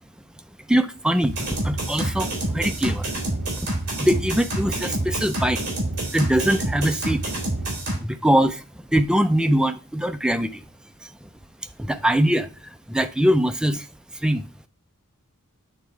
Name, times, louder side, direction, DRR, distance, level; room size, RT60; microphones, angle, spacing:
voice 1, 0.7-3.2 3.6-3.7 4.0-5.6 6.1-7.2 8.0-10.6 11.0-11.3 11.8-13.9 14.1-14.7, right 1 dB, 5° right, 0.4 m, -22 dB
sound 1, 1.3-8.0, right 1 dB, 50° right, 2.9 m, -27 dB
8.8 x 3.6 x 4.5 m
head